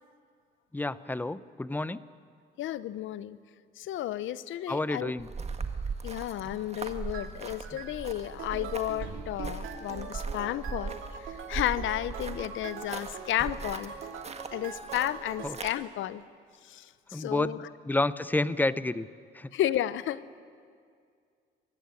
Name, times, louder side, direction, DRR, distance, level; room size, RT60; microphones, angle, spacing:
voice 1, 0.7-2.0 4.7-5.3 15.4-15.6 17.1-17.6 17.9-19.1 19.3-19.5, left 2 dB, 10° left, 16 dB, 0.7 m, -29 dB
voice 2, 2.6-3.4 3.8-5.1 6.0-10.9 11.5-13.9 14.5-16.2 16.7-16.9 17.1-17.6 19.5-20.2, left 12 dB, 80° left, 17 dB, 0.7 m, -32 dB
sound 1, 5.2-15.7, right 4 dB, 30° right, 1.8 m, -39 dB
sound 2, 7.1-7.3 7.6-7.9 8.3-15.5, right 6 dB, 85° right, 2.5 m, -43 dB
23.0 x 15.0 x 9.8 m, 2.2 s
cardioid pair, 90°, 20 cm